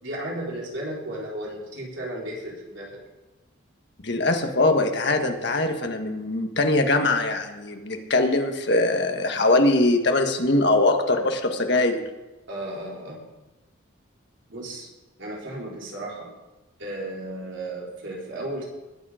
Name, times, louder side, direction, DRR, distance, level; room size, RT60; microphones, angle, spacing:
voice 1, 0.0-3.0 12.5-13.3 14.5-14.9 15.2-16.3 16.8-18.6, right 1 dB, 65° right, -3 dB, 4.0 m, -34 dB
voice 2, 4.0-12.0, left 2 dB, 55° left, 5 dB, 1.6 m, -22 dB
20.5 x 8.8 x 5.1 m, 1.1 s
head